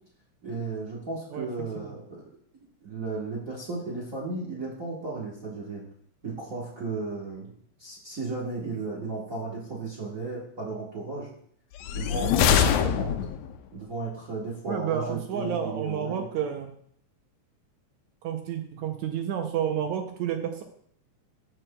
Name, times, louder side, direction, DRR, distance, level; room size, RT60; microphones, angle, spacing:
voice 1, 0.4-2.2 2.8-5.8 6.2-11.3 11.9-13.1 13.7-16.3, right 3 dB, 60° right, -4 dB, 0.8 m, -34 dB
sound 1, 11.8-13.6, left 9 dB, 90° left, 1.4 m, -23 dB
voice 2, 14.7-16.7 18.2-20.6, right 9 dB, 75° right, 5 dB, 1.9 m, -30 dB
14.0 x 5.9 x 2.2 m, 0.64 s
omnidirectional pair, 3.6 m